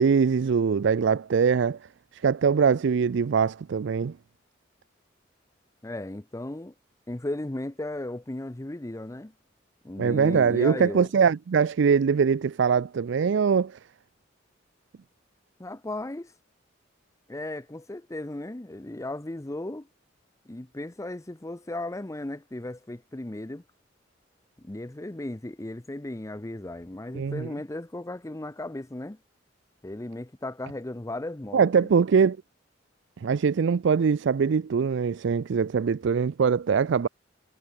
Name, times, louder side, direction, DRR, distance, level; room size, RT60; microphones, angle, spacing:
voice 1, 0.0-1.8 2.1-4.2 10.0-13.8 27.1-27.5 31.5-32.4 33.2-37.1, right 6 dB, 65° right, 0.4 m, -22 dB
voice 2, 5.8-6.7 7.1-9.3 9.8-11.1 15.6-16.3 17.3-19.9 20.5-23.6 24.6-29.2 29.8-31.9, left 1 dB, 15° left, 0.7 m, -36 dB
head